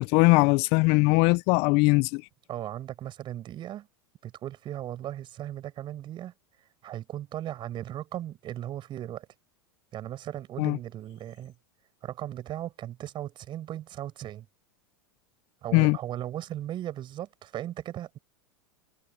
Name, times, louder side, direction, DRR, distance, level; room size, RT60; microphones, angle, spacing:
voice 1, 0.0-2.2 10.6-10.8 15.7-16.0, left 26 dB, 55° left, 0.7 m, -21 dB
voice 2, 2.5-3.9 4.2-6.3 6.8-9.3 9.9-11.5 12.0-14.5 15.6-18.2, right 12 dB, 40° right, 5.8 m, -37 dB
hypercardioid pair, 105°, 13 cm